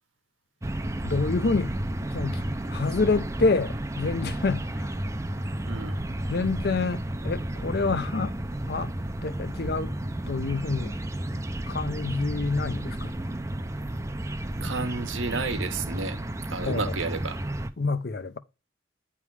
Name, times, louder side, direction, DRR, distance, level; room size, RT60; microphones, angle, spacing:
sound 1, 0.6-17.7, right 1 dB, 15° right, 0.5 m, -32 dB
voice 1, 1.0-1.7 2.0-2.4 2.7-5.0 6.3-8.4 8.7-8.9 9.2-9.9 10.3-11.0 11.7-13.1 16.6-16.9 17.8-18.4, left 3 dB, 50° left, 0.5 m, -27 dB
voice 2, 5.7-6.0 14.6-16.2 16.5-17.4, right 3 dB, 80° right, 1.2 m, -31 dB
9.5 x 3.6 x 4.7 m
head